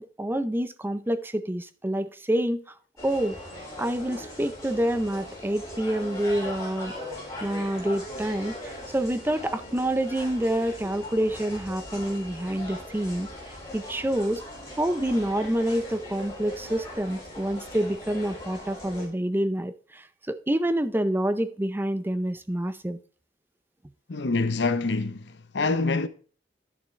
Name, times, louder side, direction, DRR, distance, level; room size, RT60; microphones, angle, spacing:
voice 1, 0.0-2.8 3.0-3.4 3.8-7.1 7.4-13.3 13.7-14.4 14.8-23.0, right 1 dB, 10° right, 0.5 m, -27 dB
sound 1, 3.0-19.1, left 1 dB, 20° left, 4.5 m, -40 dB
voice 2, 24.1-26.1, left 3 dB, 75° left, 0.8 m, -26 dB
11.5 x 6.9 x 3.2 m
head